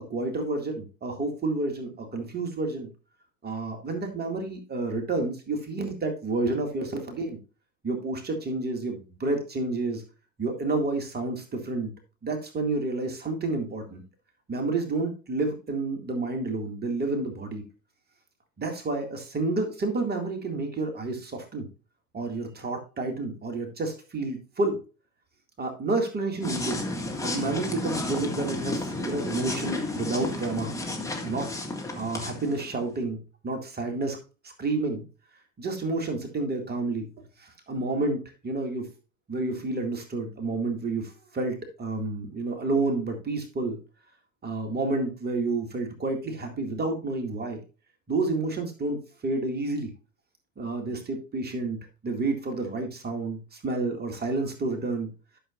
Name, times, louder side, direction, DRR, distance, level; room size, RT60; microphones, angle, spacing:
voice 1, 0.0-2.9 3.4-7.4 7.8-10.0 10.4-11.9 12.2-14.0 14.5-17.6 18.6-21.7 22.1-24.8 25.6-26.8 27.2-30.7 31.2-31.5 31.9-33.2 33.4-34.2 34.4-35.1 35.6-37.1 37.4-38.9 39.3-43.8 44.4-47.6 48.1-49.9 50.6-55.1, right 3 dB, 25° right, 4 dB, 2.2 m, -30 dB
sound 1, 26.4-32.9, left 2 dB, 10° left, 1.8 m, -32 dB
12.0 x 6.5 x 2.5 m, 0.33 s
figure-of-eight pair, 75°, 37 cm